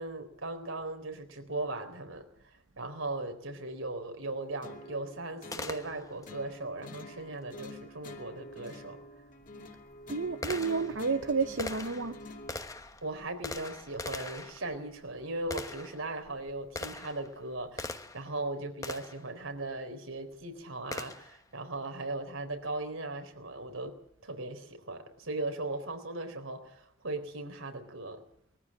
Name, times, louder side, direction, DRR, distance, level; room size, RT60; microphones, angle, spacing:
voice 1, 0.0-9.0 13.0-23.9 24.2-28.2, right 2 dB, 85° right, 6 dB, 4.0 m, -38 dB
sound 1, 4.6-12.6, left 1 dB, 40° left, 2.4 m, -47 dB
Gunshot gunfire, 5.5-6.3 8.7-8.8 9.5-18.3 18.8-19.3 20.9-21.4, left 2 dB, 15° left, 1.1 m, -42 dB
voice 2, 10.1-12.2, right 4 dB, 65° right, 10 dB, 0.8 m, -30 dB
21.5 x 14.5 x 8.7 m, 0.70 s
head